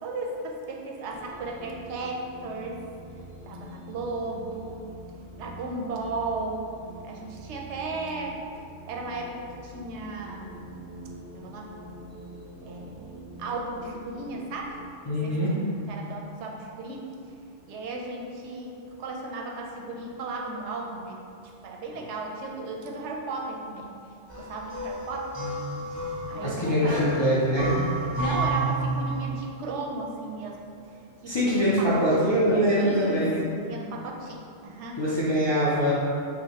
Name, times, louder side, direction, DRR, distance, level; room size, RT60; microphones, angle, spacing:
voice 1, 0.0-2.8 3.4-4.8 5.4-6.6 7.0-8.4 8.9-10.8 11.3-11.7 12.6-14.8 15.2-17.2 17.7-21.2 21.6-23.9 24.4-25.3 26.3-27.3 28.2-30.6 31.2-32.3 32.8-33.3 33.7-35.0, right 2 dB, 70° right, 0 dB, 0.8 m, -35 dB
sound 1, 1.1-14.9, right 1 dB, 10° right, 1.0 m, -45 dB
voice 2, 15.1-15.5 26.4-27.7 31.3-33.4 35.0-35.9, equal, 45° left, -9 dB, 0.3 m, -23 dB
sound 2, 24.3-29.5, right 2 dB, 50° right, 0.3 m, -30 dB
5.7 x 2.1 x 2.8 m, 2.4 s
omnidirectional pair, 1.3 m